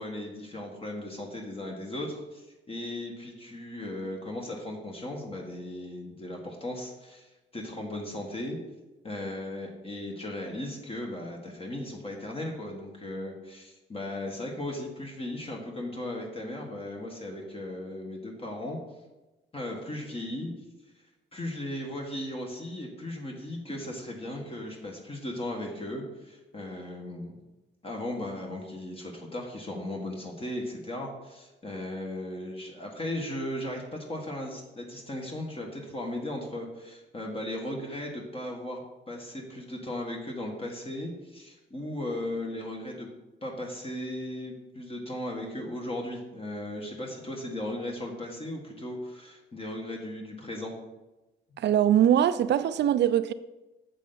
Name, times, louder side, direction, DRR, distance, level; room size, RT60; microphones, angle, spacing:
voice 1, 0.0-8.6 9.0-18.8 19.5-20.5 21.3-27.4 27.8-38.8 39.1-43.1 43.4-50.7, left 1 dB, 30° left, 1.5 m, -37 dB
voice 2, 51.6-53.3, right 10 dB, 60° right, 0.5 m, -22 dB
8.4 x 6.7 x 4.0 m
cardioid pair, 90°, 20 cm